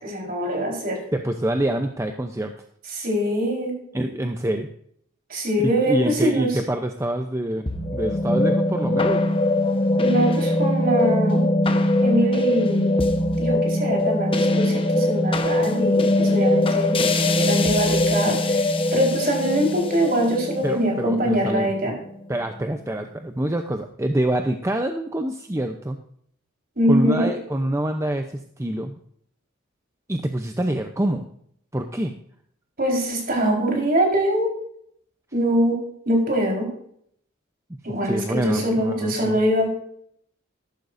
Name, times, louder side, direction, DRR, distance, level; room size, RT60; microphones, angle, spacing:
voice 1, 0.0-1.0 2.9-3.8 5.3-6.6 10.0-11.4 12.0-12.9 13.4-17.0 17.4-21.9 26.8-27.3 32.8-34.5 35.3-35.8 36.1-36.7 37.8-39.8, equal, 45° right, 0 dB, 4.3 m, -23 dB
voice 2, 1.1-2.5 3.9-4.7 5.9-9.2 20.6-22.0 22.3-26.0 26.9-29.0 30.1-31.2 31.7-32.1 38.0-39.4, right 1 dB, 15° right, 5 dB, 0.6 m, -26 dB
sound 1, 7.7-22.1, left 1 dB, 25° left, 1.0 m, -21 dB
13.5 x 12.0 x 2.6 m, 0.67 s
head